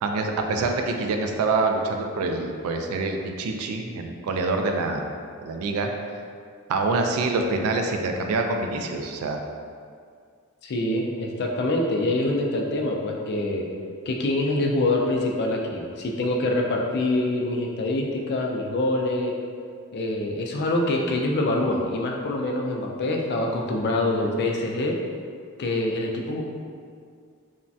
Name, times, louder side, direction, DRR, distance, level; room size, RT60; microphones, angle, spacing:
voice 1, 0.0-5.1 5.4-5.9 6.7-9.4, right 3 dB, 85° right, 5 dB, 0.3 m, -26 dB
voice 2, 10.6-13.7 14.1-19.3 19.9-24.9 25.6-26.4, left 2 dB, 50° left, 0 dB, 0.3 m, -25 dB
3.2 x 2.1 x 2.6 m, 2.2 s
head